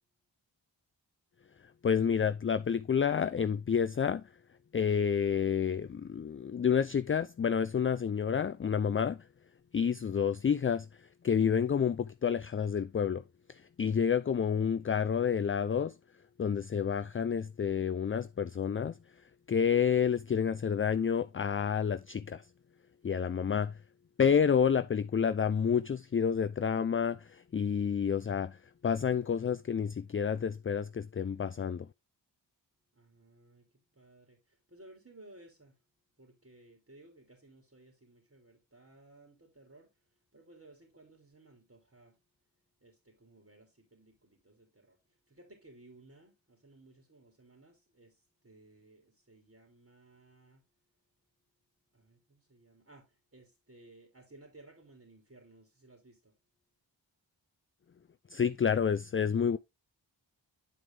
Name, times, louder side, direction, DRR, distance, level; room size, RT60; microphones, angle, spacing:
voice 1, 1.8-4.2 4.7-9.2 9.7-10.9 11.2-13.2 13.5-16.0 16.4-18.9 19.5-22.4 23.0-23.7 24.2-28.6 28.8-31.9 58.3-59.6, left 7 dB, 30° left, 0.4 m, -29 dB
voice 2, 32.9-35.8 36.2-42.2 42.8-50.6 51.9-56.4, right 2 dB, 35° right, 3.1 m, -59 dB
9.5 x 4.6 x 3.7 m
cardioid pair, 45°, 45 cm